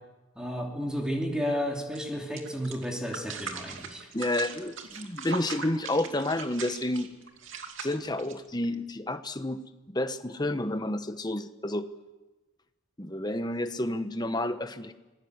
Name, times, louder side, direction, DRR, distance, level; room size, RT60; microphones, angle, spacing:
voice 1, 0.4-4.1, equal, 5° right, 0 dB, 2.9 m, -32 dB
sound 1, 1.9-2.0 2.4-8.7, right 5 dB, 70° right, 2.7 m, -40 dB
voice 2, 4.1-7.1 7.8-9.6 9.9-11.9 13.0-14.9, left 1 dB, 20° left, 9 dB, 1.1 m, -30 dB
26.5 x 19.5 x 8.1 m, 1.1 s
head